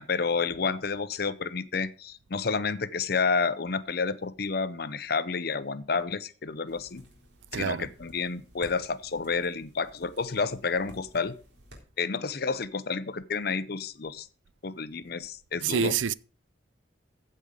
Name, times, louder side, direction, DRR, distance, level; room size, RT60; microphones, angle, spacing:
voice 1, 0.0-7.0 7.5-11.3 12.0-14.3 14.6-15.9, left 4 dB, 55° left, 0.7 m, -30 dB
sound 1, 6.7-11.8, equal, 60° right, 3.7 m, -53 dB
voice 2, 7.5-7.9 15.6-16.1, right 7 dB, 80° right, 0.4 m, -27 dB
15.0 x 5.4 x 5.1 m
head